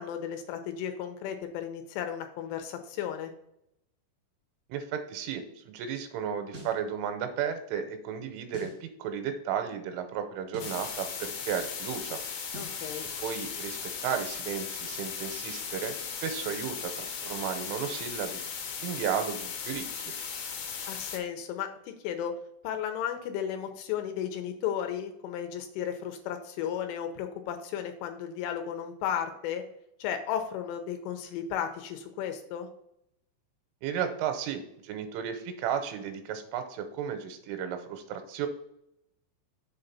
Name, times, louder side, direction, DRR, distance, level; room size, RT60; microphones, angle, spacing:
voice 1, 0.0-3.3 12.6-13.0 20.9-21.7 22.0-22.3 22.6-29.6 30.0-32.7, left 9 dB, 90° left, 6 dB, 3.2 m, -34 dB
voice 2, 4.7-12.2 13.2-16.0 16.2-18.4 18.8-20.1 33.8-38.5, right 8 dB, 90° right, 7 dB, 3.2 m, -34 dB
sound 1, 6.5-6.8 8.5-8.8 10.5-10.8 12.5-12.8, right 2 dB, 65° right, 0.8 m, -44 dB
sound 2, 10.6-21.2, left 6 dB, 75° left, 2.2 m, -37 dB
7.1 x 3.9 x 5.7 m, 0.76 s
omnidirectional pair, 5.7 m